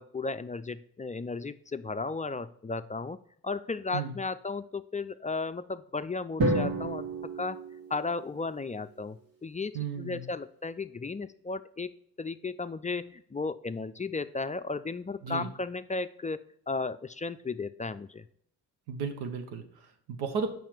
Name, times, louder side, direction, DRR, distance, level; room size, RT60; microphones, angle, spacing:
voice 1, 0.0-3.2 3.4-7.1 7.4-7.6 7.9-11.9 12.2-18.3, left 3 dB, 20° left, 12 dB, 0.4 m, -35 dB
Drum, 6.4-8.5, right 2 dB, 65° right, 2.1 m, -30 dB
voice 2, 9.7-10.3 15.2-15.5 18.9-20.5, right 5 dB, 90° right, 7 dB, 1.1 m, -34 dB
7.3 x 5.6 x 4.6 m, 0.67 s
supercardioid pair, 55°, 38 cm